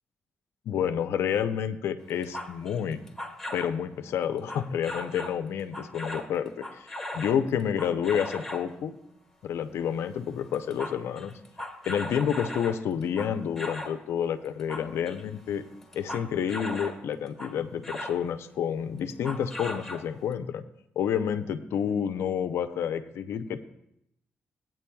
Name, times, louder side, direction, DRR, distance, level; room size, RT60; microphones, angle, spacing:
voice 1, 0.7-3.0 3.5-9.0 9.4-11.3 11.9-15.6 15.9-20.6 21.0-23.6, left 8 dB, 80° left, 9 dB, 0.6 m, -29 dB
sound 1, 2.1-3.8 4.5-5.4 5.7-8.7 9.8-10.1 10.3-14.0 14.4-17.0 17.4-18.2 19.1-20.3, left 1 dB, 5° left, 1.4 m, -38 dB
16.0 x 9.1 x 2.3 m, 0.78 s
cardioid pair, 85°, 4 cm